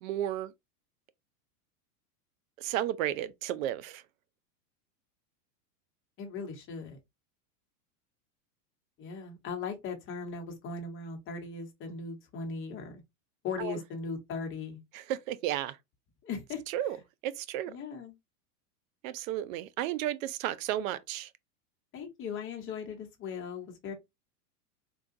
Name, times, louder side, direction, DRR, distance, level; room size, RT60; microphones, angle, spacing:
voice 1, 0.0-0.5 2.6-4.0 13.6-13.8 14.9-15.8 16.7-17.0 17.2-17.7 19.0-21.3, right 12 dB, 60° right, 0.5 m, -33 dB
voice 2, 6.2-7.0 9.0-13.0 13.4-14.8 16.2-16.6 17.7-18.1 21.9-23.9, left 5 dB, 25° left, 1.0 m, -38 dB
3.7 x 2.3 x 2.5 m
supercardioid pair, 130°, 46 cm